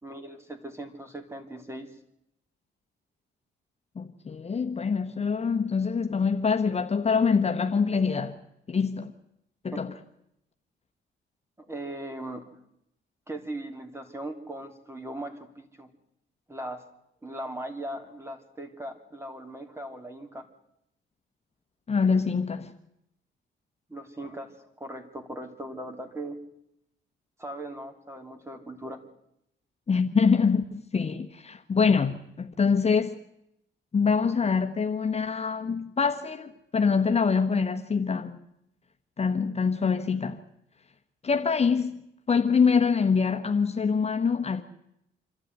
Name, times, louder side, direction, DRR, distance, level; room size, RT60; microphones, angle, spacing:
voice 1, 0.0-1.9 9.7-9.8 11.6-12.4 13.3-15.9 16.5-16.8 17.2-20.4 23.9-26.4 27.4-29.0, right 1 dB, 15° right, 3.4 m, -39 dB
voice 2, 4.0-8.4 8.7-9.1 9.6-9.9 21.9-22.7 29.9-33.2 33.9-38.4 39.2-40.4 41.2-42.0 42.3-44.6, left 5 dB, 30° left, 1.3 m, -25 dB
26.5 x 13.0 x 9.5 m
cardioid pair, 90°, 20 cm